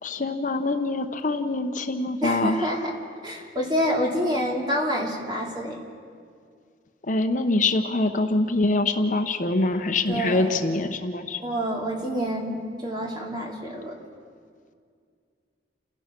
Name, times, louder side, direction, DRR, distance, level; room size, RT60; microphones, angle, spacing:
voice 1, 0.0-2.9 7.0-11.4, left 2 dB, 45° left, 7 dB, 0.9 m, -24 dB
voice 2, 2.2-2.9 3.2-5.8 10.1-10.5 11.4-14.0, equal, 25° right, -1 dB, 2.9 m, -27 dB
29.5 x 16.0 x 6.0 m, 2.2 s
head